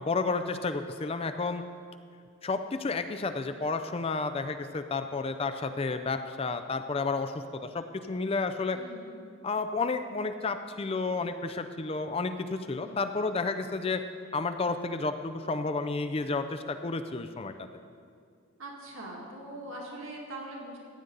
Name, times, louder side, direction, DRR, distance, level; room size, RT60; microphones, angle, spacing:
voice 1, 0.0-1.6 2.4-8.8 9.4-14.0 14.3-17.5, left 3 dB, 25° left, 9 dB, 0.4 m, -31 dB
voice 2, 8.7-9.3 12.8-13.0 18.6-20.8, right 1 dB, 75° right, -2 dB, 2.3 m, -42 dB
15.0 x 9.4 x 3.9 m, 2.3 s
head